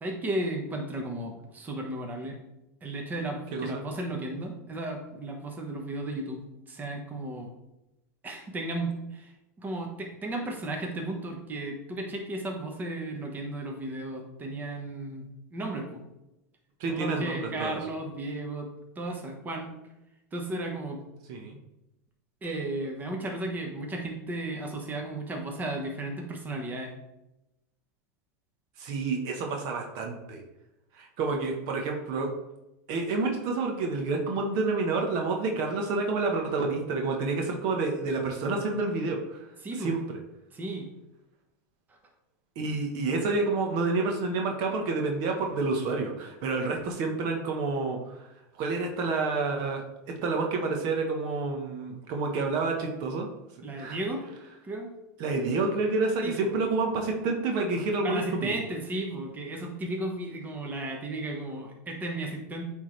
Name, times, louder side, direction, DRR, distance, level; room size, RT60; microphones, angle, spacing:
voice 1, 0.0-2.4 2.8-6.4 6.7-7.5 8.2-9.3 9.6-16.0 16.9-18.7 18.9-19.8 20.3-21.0 22.4-26.9 39.6-40.0 40.5-40.9 41.9-42.0 53.6-54.2 54.6-54.9 56.2-56.5 58.0-62.6, right 2 dB, 20° right, 1 dB, 1.2 m, -34 dB
voice 2, 16.8-17.8 21.3-21.6 28.8-30.4 30.9-32.3 32.9-39.5 39.8-40.0 42.6-49.8 50.2-53.3 53.8-54.0 55.2-58.6, right 3 dB, 55° right, 2 dB, 1.1 m, -29 dB
8.5 x 3.7 x 3.2 m, 0.92 s
supercardioid pair, 115°, 8 cm